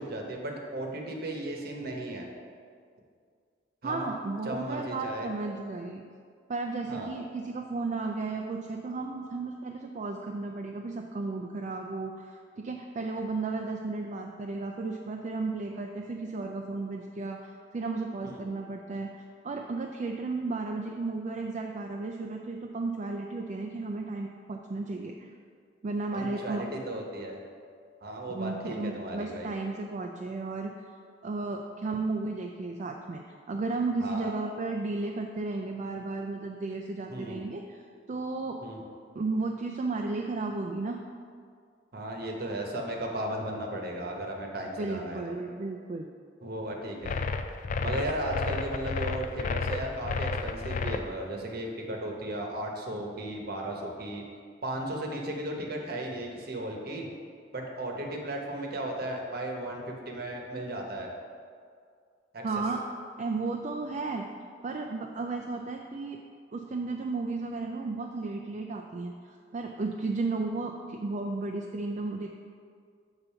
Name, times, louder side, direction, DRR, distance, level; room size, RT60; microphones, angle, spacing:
voice 1, 0.0-2.2 3.8-4.1 4.4-5.3 6.9-7.1 18.2-18.4 26.1-27.4 28.0-29.5 34.0-34.3 37.1-37.4 38.6-38.8 41.9-45.4 46.4-47.2 47.8-54.2 54.6-57.1 57.5-61.1 62.3-62.4, right 1 dB, 55° right, 1 dB, 1.0 m, -35 dB
voice 2, 3.8-6.0 6.5-19.1 19.4-25.1 25.8-26.7 28.3-30.7 31.2-33.2 33.5-37.8 38.1-38.6 39.2-41.0 44.8-46.1 62.4-62.8 63.2-64.3 64.6-66.2 66.5-69.1 69.5-72.3, right 3 dB, 40° right, 2 dB, 0.4 m, -34 dB
sound 1, 47.0-51.0, left 4 dB, 45° left, 0.3 m, -31 dB
7.2 x 4.0 x 5.5 m, 2.2 s
head